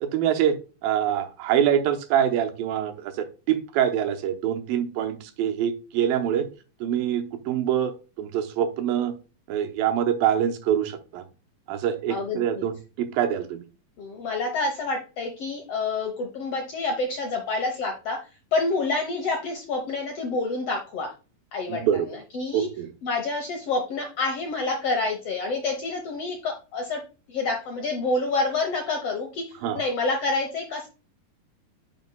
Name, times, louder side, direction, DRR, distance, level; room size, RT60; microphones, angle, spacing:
voice 1, 0.0-0.6 0.8-6.5 6.8-9.1 9.5-11.2 11.7-13.7 21.7-22.1 22.5-22.9 29.6-29.8, right 9 dB, 80° right, 6 dB, 2.5 m, -25 dB
voice 2, 12.1-12.7 14.0-18.2 18.5-21.1 21.5-22.7 23.0-27.0 27.3-29.4 29.7-30.9, left 3 dB, 85° left, 2 dB, 1.3 m, -28 dB
9.4 x 5.3 x 2.2 m, 0.33 s
omnidirectional pair, 4.4 m